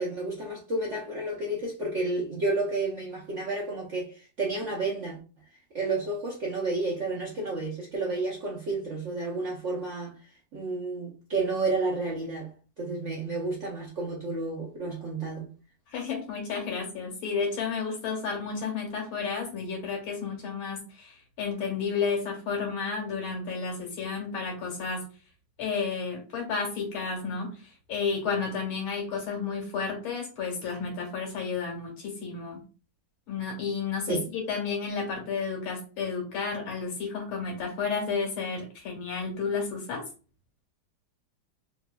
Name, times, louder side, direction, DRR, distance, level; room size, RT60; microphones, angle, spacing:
voice 1, 0.0-5.2 5.7-10.1 10.5-15.5 34.1-34.2, right 2 dB, 65° right, 0.7 m, -31 dB
voice 2, 15.9-25.1 25.6-32.6 33.3-40.0, left 5 dB, 85° left, 2.1 m, -32 dB
3.9 x 2.9 x 2.2 m
omnidirectional pair, 2.2 m